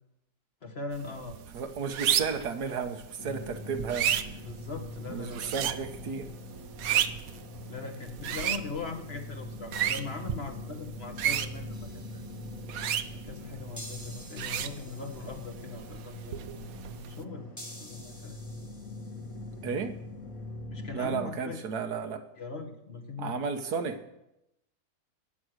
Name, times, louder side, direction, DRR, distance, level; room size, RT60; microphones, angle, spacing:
voice 1, 0.6-1.4 4.4-5.5 7.7-12.2 13.2-16.6 17.1-18.4 20.7-21.6 22.4-23.4, left 4 dB, 40° left, 4 dB, 1.9 m, -40 dB
sound 1, 0.9-17.2, right 10 dB, 65° right, 1.1 m, -34 dB
voice 2, 1.5-4.1 5.1-6.3 19.6-20.0 20.9-22.3 23.2-24.1, right 6 dB, 90° right, 8 dB, 1.7 m, -33 dB
sound 2, 3.2-21.2, left 2 dB, 60° left, 2.4 m, -43 dB
sound 3, 11.7-12.6 13.8-15.7 17.6-19.5, equal, 10° left, 1.9 m, -49 dB
15.5 x 9.7 x 6.4 m, 0.87 s
omnidirectional pair, 1.7 m